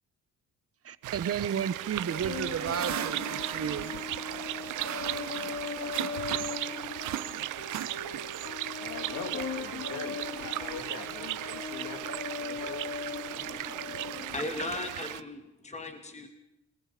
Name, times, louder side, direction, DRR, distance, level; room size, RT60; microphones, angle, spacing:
voice 1, 0.8-3.9, right 8 dB, 50° right, 14 dB, 1.4 m, -33 dB
sound 1, 1.0-15.2, right 16 dB, 85° right, 0.8 m, -37 dB
sound 2, 1.9-6.7 7.0-8.4, right 11 dB, 65° right, 1.4 m, -39 dB
sound 3, 2.0-15.0, left 6 dB, 50° left, 2.6 m, -39 dB
voice 2, 8.7-12.1 12.4-12.9 13.5-13.6, left 6 dB, 80° left, 7 dB, 3.1 m, -43 dB
voice 3, 13.3-16.3, left 2 dB, 20° left, 6 dB, 2.4 m, -38 dB
29.5 x 19.5 x 5.3 m, 0.84 s
cardioid pair, 90°, 30 cm